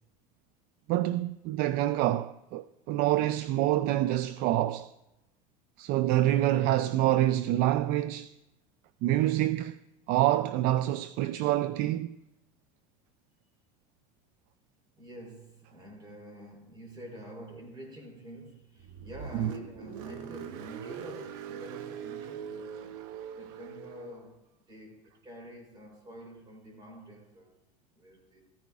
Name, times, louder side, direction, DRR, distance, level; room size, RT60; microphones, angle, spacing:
voice 1, 0.9-4.9 5.8-8.3 9.0-9.8 10.1-12.1 19.4-19.5, right 14 dB, 55° right, 0.4 m, -26 dB
voice 2, 15.0-23.0 23.4-24.4 24.7-27.5 27.9-28.4, equal, 25° right, 3.7 m, -47 dB
Car, 18.8-24.2, right 8 dB, 70° right, 0.9 m, -42 dB
14.5 x 14.5 x 2.4 m
supercardioid pair, 115°, 19 cm